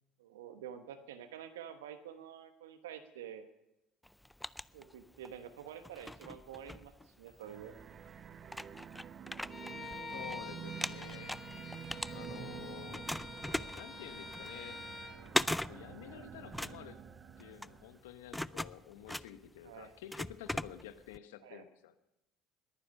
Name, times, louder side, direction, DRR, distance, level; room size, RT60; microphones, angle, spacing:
voice 1, 0.2-3.5 4.7-7.7 13.4-13.7 19.6-19.9 21.4-21.6, right 9 dB, 85° right, 10 dB, 1.0 m, -48 dB
sound 1, 4.0-5.4 5.8-7.5 8.1-8.2 8.5-10.4 10.6-12.6 12.9-21.2, left 1 dB, 5° left, 0.4 m, -40 dB
sound 2, 7.4-18.0, right 8 dB, 40° right, 1.0 m, -49 dB
Bowed string instrument, 9.5-15.2, left 3 dB, 25° left, 4.6 m, -47 dB
voice 2, 10.1-11.4 11.9-13.1 13.7-14.8 15.7-17.0 17.4-22.0, left 11 dB, 80° left, 11 dB, 1.1 m, -50 dB
21.0 x 9.7 x 5.5 m, 0.90 s
hypercardioid pair, 70°, 0 cm